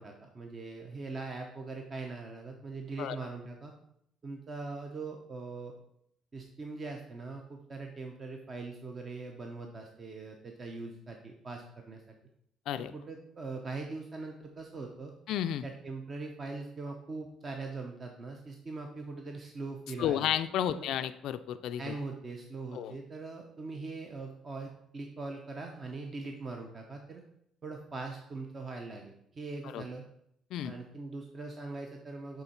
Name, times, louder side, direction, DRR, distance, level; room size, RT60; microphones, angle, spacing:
voice 1, 0.0-3.7 4.2-5.7 6.3-12.0 12.7-15.1 15.6-20.3 20.7-20.9 21.8-27.2 27.6-30.0 30.6-32.4, right 3 dB, 35° right, 3 dB, 0.7 m, -41 dB
voice 2, 15.3-15.6 20.0-21.9 22.7-23.0 29.7-29.8 30.5-30.7, left 10 dB, 75° left, 11 dB, 0.3 m, -32 dB
7.9 x 3.8 x 4.3 m, 0.75 s
cardioid pair, 100°, 0 cm